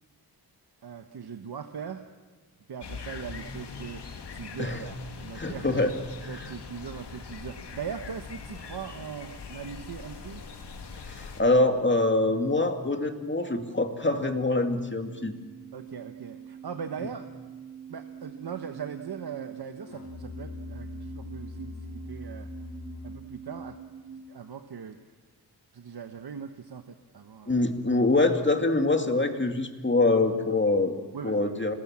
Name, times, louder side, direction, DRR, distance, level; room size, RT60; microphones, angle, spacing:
voice 1, 0.8-2.0 2.7-4.0 4.3-5.7 6.2-10.4 15.7-17.2 17.9-22.5 23.0-23.8 24.3-25.0 25.7-27.6 31.1-31.4, right 7 dB, 70° right, 7 dB, 1.3 m, -40 dB
sound 1, 2.8-11.4, left 5 dB, 85° left, 2.5 m, -42 dB
voice 2, 5.3-5.9 6.2-6.5 11.1-15.3 27.5-30.9 31.2-31.7, left 2 dB, 30° left, 5 dB, 2.3 m, -25 dB
sound 2, 14.6-24.2, right 6 dB, 35° right, 1.3 m, -45 dB
Musical instrument, 19.9-23.4, left 2 dB, 65° left, 3.0 m, -42 dB
27.0 x 20.5 x 7.5 m, 1.3 s
wide cardioid pair, 80°, 40 cm